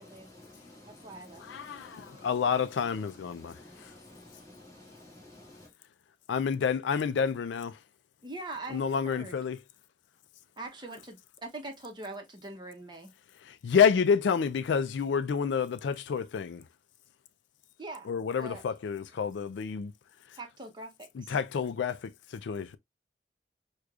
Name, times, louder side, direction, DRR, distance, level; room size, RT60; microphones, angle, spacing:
voice 1, 0.0-5.7, left 1 dB, 20° left, 1.7 m, -52 dB
voice 2, 0.9-1.4 8.2-9.4 10.6-13.1 17.8-18.1 18.4-18.6 19.1-19.2 20.4-21.4, right 2 dB, 25° right, 0.8 m, -43 dB
voice 3, 1.4-3.5 6.3-7.8 8.7-9.6 13.5-16.6 18.1-19.9 21.3-22.0 22.5-22.8, left 6 dB, 75° left, 0.3 m, -28 dB
6.3 x 2.3 x 2.3 m
head